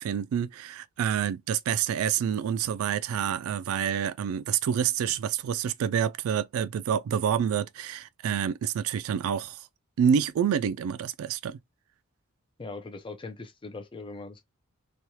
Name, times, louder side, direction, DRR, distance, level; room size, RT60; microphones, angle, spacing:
voice 1, 0.0-9.7 10.0-11.6, right 8 dB, 70° right, 0.3 m, -28 dB
voice 2, 12.6-14.4, left 3 dB, 25° left, 0.5 m, -40 dB
3.1 x 2.3 x 2.7 m
head